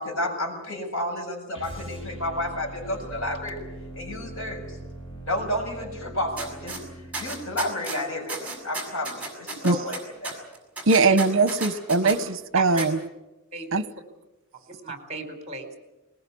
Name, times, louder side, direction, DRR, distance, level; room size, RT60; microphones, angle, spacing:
voice 1, 0.0-3.6 3.9-4.7 5.3-6.8 7.2-10.4, left 1 dB, 70° left, 2 dB, 6.9 m, -31 dB
sound 1, 1.5-7.7, right 1 dB, 25° left, 6.9 m, -41 dB
sound 2, 6.4-6.8 7.1-8.0 8.3-12.2 12.8-12.9, right 3 dB, 5° right, 6.3 m, -33 dB
voice 2, 10.9-13.0 13.7-13.8, right 3 dB, 65° right, 14 dB, 0.9 m, -21 dB
voice 3, 12.5-12.9 13.5-13.8 14.7-15.8, right 4 dB, 30° right, 6 dB, 4.4 m, -34 dB
21.0 x 20.5 x 8.5 m, 1.0 s
head